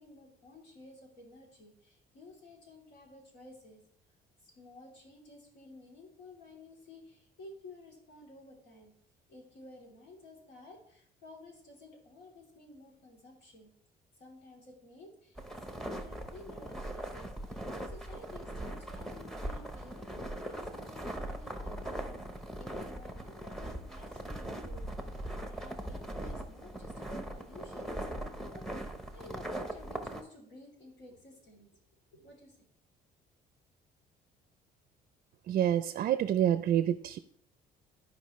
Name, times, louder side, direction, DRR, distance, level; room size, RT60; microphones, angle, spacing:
voice 1, 0.0-3.8 4.4-8.9 9.3-13.7 14.2-22.2 22.6-25.2 25.5-31.8 32.1-32.7, left 1 dB, 80° left, -1 dB, 3.1 m, -53 dB
sound 1, 15.4-30.2, right 1 dB, ahead, 0.9 m, -40 dB
voice 2, 35.5-37.2, right 10 dB, 55° right, 12 dB, 0.4 m, -27 dB
13.0 x 4.8 x 3.1 m, 0.65 s
cardioid pair, 110°, 17 cm